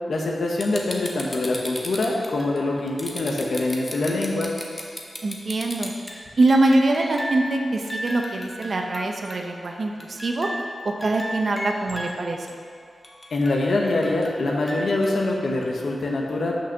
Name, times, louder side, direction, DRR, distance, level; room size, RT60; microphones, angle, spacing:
voice 1, 0.1-4.5 13.3-16.5, left 2 dB, 65° left, -1 dB, 1.1 m, -24 dB
sound 1, 0.6-7.5 7.8-9.7 10.0-12.1 12.5-12.6 13.0-15.2 15.6-15.7, equal, 15° left, 0.8 m, -35 dB
voice 2, 5.2-5.9 6.4-10.5 10.8-12.5, right 2 dB, 45° right, 3 dB, 0.7 m, -23 dB
6.0 x 5.8 x 6.6 m, 2.3 s
wide cardioid pair, 170°, 0 cm